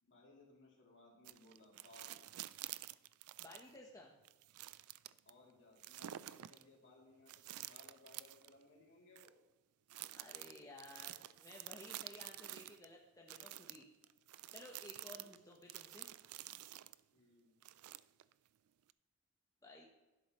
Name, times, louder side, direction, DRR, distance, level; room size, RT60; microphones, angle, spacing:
voice 1, 0.0-2.3 5.2-9.3 15.2-15.4 17.1-17.5, left 2 dB, 60° left, -2 dB, 2.9 m, -63 dB
sound 1, 1.2-3.8 4.2-5.3 5.8-6.6 7.3-8.5 9.1-9.3 9.9-12.8 13.3-17.0 17.6-18.3 18.9-19.0, right 14 dB, 85° right, 0.4 m, -50 dB
voice 2, 3.4-4.1 10.1-13.9 14.5-16.1 19.6-19.9, left 2 dB, 15° left, -1 dB, 1.0 m, -56 dB
12.0 x 11.0 x 3.0 m, 1.1 s
head